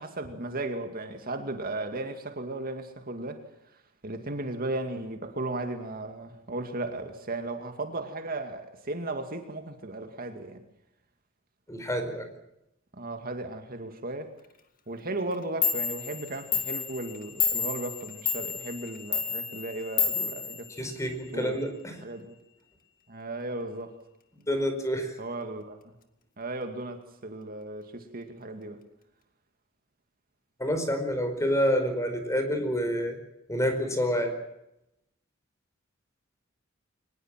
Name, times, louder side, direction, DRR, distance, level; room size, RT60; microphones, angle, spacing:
voice 1, 0.0-3.4 4.0-10.6 13.0-14.3 14.9-20.7 21.3-21.5 22.0-22.3 23.1-23.9 25.2-25.8 26.4-28.8, right 2 dB, 45° right, 2.4 m, -35 dB
voice 2, 11.7-12.3 20.8-22.0 24.5-25.2 30.6-33.2 33.5-34.3, equal, 15° left, 4.9 m, -28 dB
Clock, 15.3-15.4 15.6-21.3, left 6 dB, 45° left, 2.1 m, -31 dB
23.5 x 20.5 x 7.6 m
head